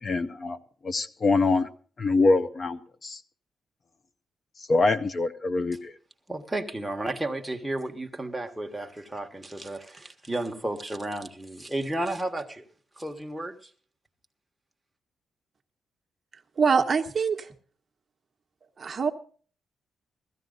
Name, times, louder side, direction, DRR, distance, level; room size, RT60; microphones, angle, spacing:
voice 1, 0.0-0.6 0.8-1.7 2.0-3.2 4.6-5.9, left 3 dB, 35° left, 11 dB, 0.7 m, -24 dB
voice 2, 6.3-12.7 13.0-13.7, right 1 dB, 5° right, 3 dB, 1.4 m, -33 dB
voice 3, 16.6-17.5 18.8-19.1, right 5 dB, 35° right, 4 dB, 1.1 m, -24 dB
16.5 x 14.0 x 3.9 m, 0.42 s
wide cardioid pair, 145°, 0 cm